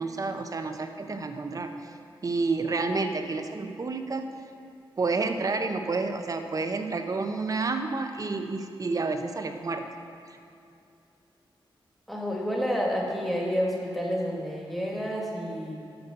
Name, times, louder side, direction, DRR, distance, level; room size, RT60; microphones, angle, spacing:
voice 1, 0.0-1.9 2.2-4.3 5.0-9.8 10.3-10.4, right 3 dB, 40° right, 6 dB, 0.7 m, -30 dB
voice 2, 12.1-15.7, equal, ahead, -3 dB, 1.6 m, -29 dB
8.0 x 6.7 x 5.6 m, 2.7 s
wide cardioid pair, 105°, 9 cm